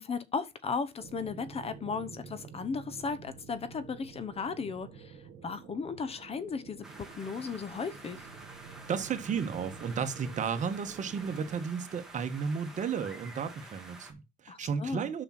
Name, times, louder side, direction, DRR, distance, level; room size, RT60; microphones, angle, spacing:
voice 1, 0.0-5.1 5.4-8.2 14.5-15.1, left 5 dB, 35° left, 1.0 m, -36 dB
sound 1, 1.0-11.6, right 6 dB, 65° right, 1.9 m, -49 dB
sound 2, 6.8-14.1, right 2 dB, 5° right, 2.2 m, -49 dB
voice 2, 8.9-15.2, right 6 dB, 45° right, 1.4 m, -33 dB
6.6 x 6.1 x 5.9 m
cardioid pair, 110°, 17 cm